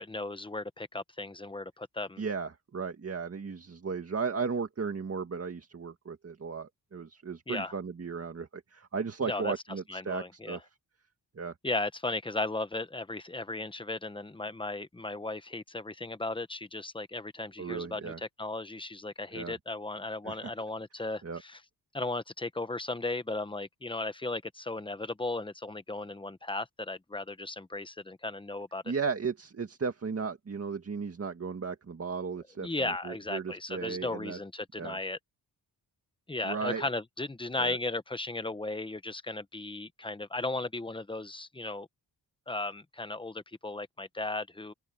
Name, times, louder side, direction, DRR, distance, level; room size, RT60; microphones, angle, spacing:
voice 1, 0.0-2.2 7.5-7.7 9.2-9.5 9.9-10.6 11.6-21.6 21.9-28.8 32.6-35.2 36.3-41.9 42.5-44.7, left 2 dB, 10° left, 1.0 m, -36 dB
voice 2, 2.2-10.6 11.4-11.5 17.6-18.2 19.3-19.5 20.2-20.5 21.2-21.4 28.9-34.4 34.8-35.0 36.4-36.9 37.6-37.8, right 5 dB, 35° right, 2.0 m, -35 dB
wide cardioid pair, 130°, 40 cm